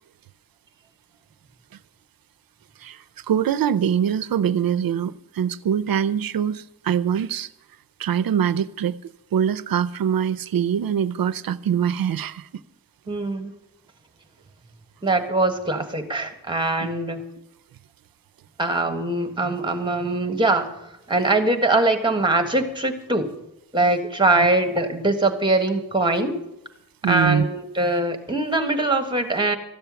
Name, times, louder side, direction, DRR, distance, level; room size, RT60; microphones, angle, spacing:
voice 1, 2.8-7.5 8.0-12.5 16.8-16.9 24.3-24.5 27.0-27.5, right 8 dB, 80° right, 0.5 m, -23 dB
voice 2, 13.1-13.5 15.0-17.2 18.6-20.7 21.1-23.3 23.7-26.3 27.0-29.6, right 2 dB, 15° right, 1.5 m, -22 dB
13.5 x 6.9 x 9.3 m
wide cardioid pair, 130°, 35 cm